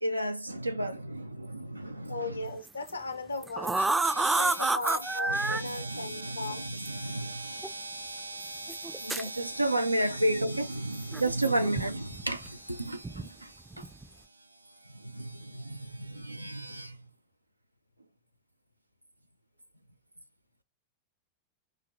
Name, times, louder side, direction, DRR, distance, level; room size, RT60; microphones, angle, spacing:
voice 1, 0.0-2.4 3.8-14.0 14.8-17.0, right 1 dB, 85° right, 0.3 m, -33 dB
voice 2, 2.1-3.8 4.2-6.7 10.1-10.2, left 3 dB, 80° left, 0.5 m, -37 dB
sound 1, 2.7-2.9 3.4-5.6 6.8-6.9 7.6-7.7 8.7-9.3 11.1-11.9 12.1-12.5 13.0-13.3 13.7-14.0, right 3 dB, 10° right, 0.4 m, -29 dB
4.9 x 2.8 x 2.8 m
figure-of-eight pair, 90°, 0 cm